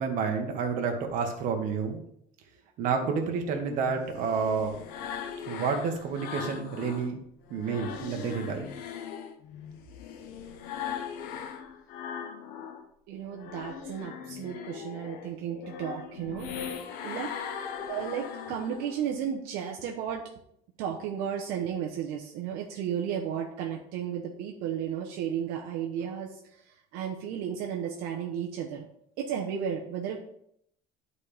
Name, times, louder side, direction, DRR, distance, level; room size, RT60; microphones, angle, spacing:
voice 1, 0.0-2.0 2.8-4.7 5.5-7.2 7.5-8.7, right 5 dB, 55° right, 4 dB, 1.4 m, -29 dB
sound 1, 3.7-7.1 7.5-12.8 13.2-19.1, left 7 dB, 70° left, 0.9 m, -39 dB
voice 2, 13.1-16.5 17.0-17.3 17.9-20.2 20.8-26.6 26.9-28.8 29.2-30.2, right 8 dB, 80° right, 0 dB, 0.9 m, -33 dB
11.0 x 4.3 x 3.4 m, 0.72 s
cardioid pair, 165°, 15 cm